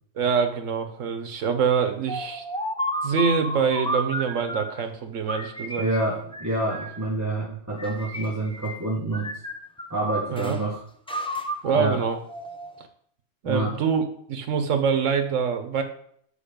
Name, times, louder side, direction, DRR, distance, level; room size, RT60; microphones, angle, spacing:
voice 1, 0.2-2.4 3.0-5.8 10.3-10.6 11.6-12.2 13.4-14.0 14.3-15.8, right 6 dB, 80° right, 8 dB, 1.3 m, -25 dB
sound 1, 2.1-4.8 5.3-7.1 7.7-8.9 9.1-10.6 11.1-12.9, equal, 5° left, 0.5 m, -32 dB
voice 2, 5.8-9.3 9.9-10.8 11.7-12.0 13.4-13.7, right 2 dB, 15° right, -5 dB, 1.2 m, -27 dB
7.0 x 5.0 x 5.2 m, 0.65 s
omnidirectional pair, 1.3 m